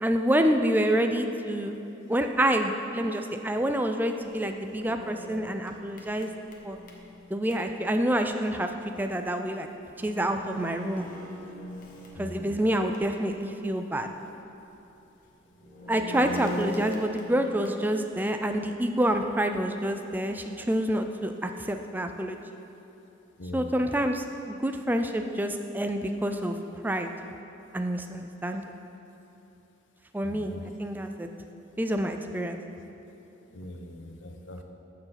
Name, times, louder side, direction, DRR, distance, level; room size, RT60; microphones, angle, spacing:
voice 1, 0.0-1.8 2.1-6.3 6.6-6.8 7.3-8.7 9.0-9.7 10.0-11.1 12.2-14.1 15.9-22.4 23.5-26.6 26.8-27.1 27.7-28.6 30.1-31.3 31.8-32.6, right 1 dB, 10° right, 5 dB, 0.4 m, -27 dB
sound 1, 4.3-7.6 9.4-9.5 9.9-13.2 13.6-13.7 15.4-17.9, left 1 dB, 45° left, 1.2 m, -40 dB
voice 2, 12.1-12.5 16.2-16.4 23.4-23.7 30.2-30.6 33.5-34.6, left 1 dB, 70° left, 4 dB, 0.9 m, -41 dB
14.0 x 4.8 x 5.8 m, 2.9 s
head